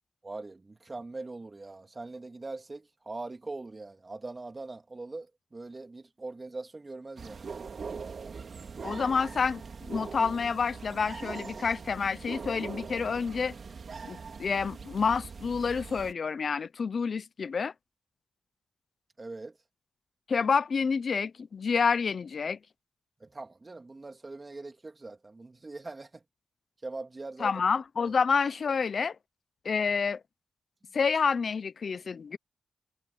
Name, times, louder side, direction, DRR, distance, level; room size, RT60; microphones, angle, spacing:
voice 1, 0.2-7.5 19.2-19.6 23.2-26.2 26.8-27.6 28.0-28.1, right 3 dB, 35° right, 3.2 m, -42 dB
sound 1, 7.2-16.1, right 5 dB, 60° right, 4.2 m, -41 dB
voice 2, 8.8-13.5 14.1-17.7 20.3-22.6 27.4-29.2 29.6-30.2 30.9-32.4, left 5 dB, 65° left, 0.8 m, -28 dB
cardioid pair, 70°, 0 cm